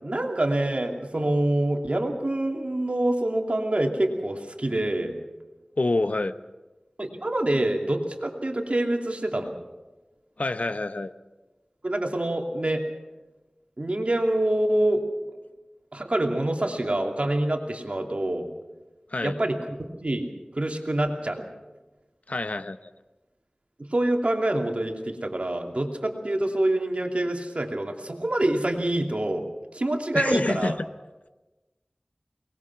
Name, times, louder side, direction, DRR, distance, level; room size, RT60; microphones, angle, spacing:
voice 1, 0.0-5.1 7.0-9.5 11.8-12.8 13.8-15.4 15.9-18.5 19.2-21.4 23.8-29.5 29.7-30.8, right 1 dB, 55° right, 3 dB, 2.7 m, -26 dB
voice 2, 5.8-6.3 10.4-11.1 19.1-19.4 22.3-22.9 30.1-30.9, left 2 dB, 70° left, 12 dB, 0.8 m, -27 dB
22.5 x 20.0 x 6.0 m, 1.1 s
wide cardioid pair, 40°, 3 cm